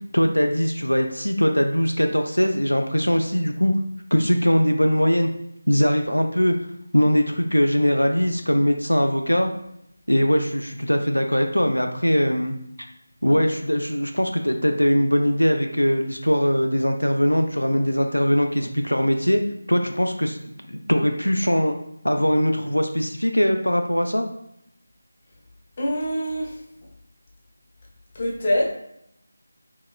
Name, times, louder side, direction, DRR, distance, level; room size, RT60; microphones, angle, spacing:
voice 1, 0.1-3.7 4.1-5.3 5.7-6.6 6.9-9.5 10.1-12.9 13.2-19.4 19.7-21.8 22.0-24.2, equal, 90° left, 4 dB, 0.3 m, -21 dB
voice 2, 25.8-26.6 28.1-28.7, equal, 30° left, -3 dB, 0.6 m, -24 dB
2.9 x 2.8 x 2.3 m, 0.76 s
figure-of-eight pair, 165°, 0 cm